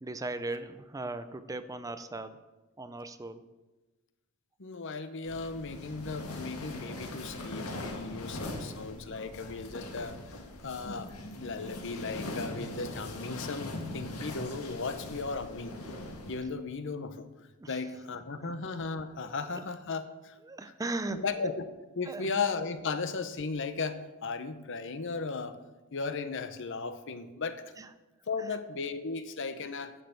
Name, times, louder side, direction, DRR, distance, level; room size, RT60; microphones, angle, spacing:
voice 1, 0.0-2.4 2.8-3.4 17.6-17.8 18.4-18.6 19.2-19.6 20.5-21.2 22.1-22.3 27.8-27.9 28.5-28.6, right 2 dB, 15° right, 11 dB, 0.5 m, -38 dB
voice 2, 4.6-10.4 10.6-11.1 11.4-15.8 16.3-17.3 17.7-20.4 21.1-21.6 22.0-25.6 25.9-27.6 28.3-29.9, left 4 dB, 60° left, 11 dB, 0.8 m, -36 dB
sound 1, 5.2-16.4, left 1 dB, 80° left, 1.7 m, -41 dB
10.0 x 6.6 x 8.2 m, 1.1 s
head